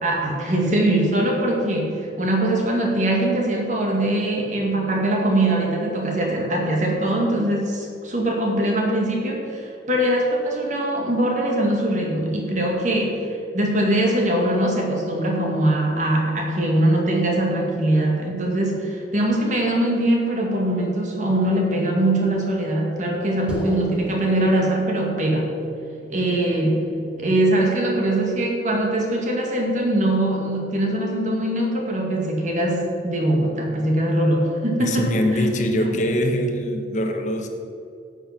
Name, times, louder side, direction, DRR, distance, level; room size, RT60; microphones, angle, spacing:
voice 1, 0.0-13.2 13.5-25.5 26.1-26.9 27.2-35.4 35.8-35.9, right 1 dB, 45° right, 0 dB, 2.1 m, -22 dB
sound 1, 23.5-28.3, equal, 5° right, 2.1 m, -37 dB
voice 2, 34.8-37.5, equal, 45° left, 4 dB, 1.2 m, -23 dB
12.0 x 7.9 x 5.9 m, 2.6 s
head